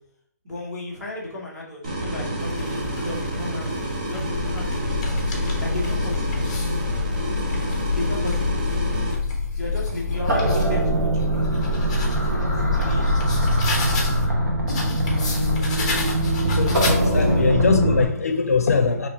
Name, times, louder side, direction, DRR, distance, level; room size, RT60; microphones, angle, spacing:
voice 1, 0.4-5.2 5.6-6.5 7.9-8.6 9.5-13.1 15.0-16.1 16.8-16.9, left 2 dB, 5° right, 0.9 m, -35 dB
sound 1, 1.8-9.1, right 1 dB, 30° right, 0.6 m, -28 dB
sound 2, 2.4-3.2 3.9-6.8 7.3-10.7 11.2-14.3 14.7-17.4, left 2 dB, 25° left, 0.7 m, -34 dB
sound 3, 4.3-18.1, equal, 80° right, 1.3 m, -23 dB
voice 2, 16.5-19.1, left 5 dB, 60° left, 0.5 m, -22 dB
5.0 x 3.0 x 2.9 m
hypercardioid pair, 180°, 9 cm